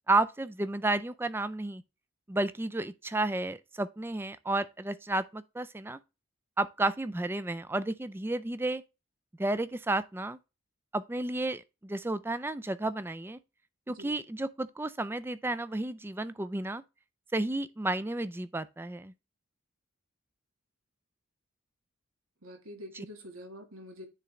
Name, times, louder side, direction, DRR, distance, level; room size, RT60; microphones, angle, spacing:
voice 1, 0.1-1.8 2.3-6.0 6.6-8.8 9.4-10.4 10.9-13.4 13.9-16.8 17.3-19.1, right 2 dB, 10° right, 0.3 m, -32 dB
voice 2, 13.9-14.2 22.4-24.1, equal, 90° right, 1.8 m, -46 dB
9.8 x 3.8 x 3.2 m
head